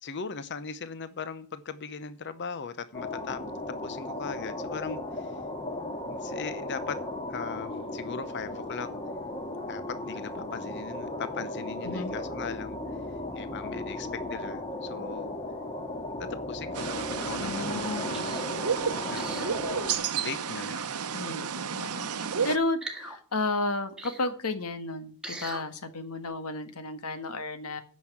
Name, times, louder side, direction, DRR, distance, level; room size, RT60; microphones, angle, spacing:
voice 1, 0.0-3.4 3.7-5.4 6.1-7.0 7.3-8.9 9.7-12.8 13.3-15.3 16.2-18.3 18.6-18.7 19.1-19.8 20.1-20.8, left 5 dB, 50° left, 0.8 m, -39 dB
sound 1, 2.9-20.0, left 2 dB, 25° left, 1.7 m, -36 dB
sound 2, 16.7-22.6, right 7 dB, 85° right, 0.8 m, -32 dB
voice 2, 17.4-18.5 21.1-27.8, left 2 dB, 85° left, 1.6 m, -33 dB
sound 3, 18.1-18.5 19.1-19.6 20.5-20.9 22.8-23.2 24.0-24.3 25.2-25.6 26.2-26.3, right 2 dB, 5° right, 1.7 m, -41 dB
9.5 x 6.3 x 8.6 m
head